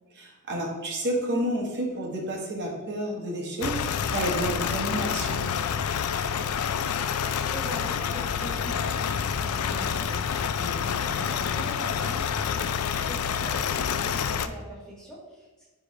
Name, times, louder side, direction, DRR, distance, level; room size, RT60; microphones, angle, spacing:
voice 1, 0.1-3.8 4.1-5.5 10.6-11.0, right 1 dB, 50° right, -1 dB, 1.4 m, -30 dB
sound 1, 3.6-14.5, left 7 dB, 80° left, 0.4 m, -28 dB
voice 2, 6.3-15.7, equal, 5° left, -7 dB, 1.7 m, -43 dB
9.8 x 3.6 x 3.2 m, 1.2 s
head